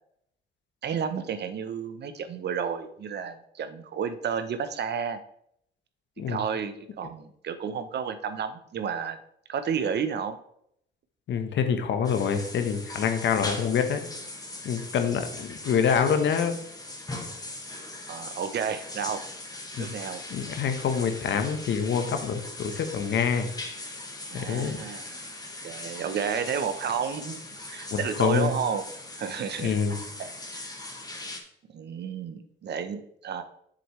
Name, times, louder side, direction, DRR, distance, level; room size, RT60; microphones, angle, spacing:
voice 1, 0.8-5.2 6.3-9.2 9.5-10.4 18.1-19.2 19.8-20.2 24.3-25.2 25.6-27.4 27.7-28.8 29.2-29.8 30.2-30.3 30.6-30.9 31.7-33.4, right 7 dB, 55° right, 10 dB, 0.8 m, -31 dB
voice 2, 11.3-14.1 14.6-16.6 19.8-19.9 20.3-23.5 24.3-24.8 27.9-28.5 29.6-30.0, left 7 dB, 65° left, 7 dB, 1.1 m, -26 dB
sound 1, 12.0-31.4, left 2 dB, 20° left, 1.5 m, -40 dB
7.6 x 6.8 x 3.2 m, 0.70 s
cardioid pair, 90°, 20 cm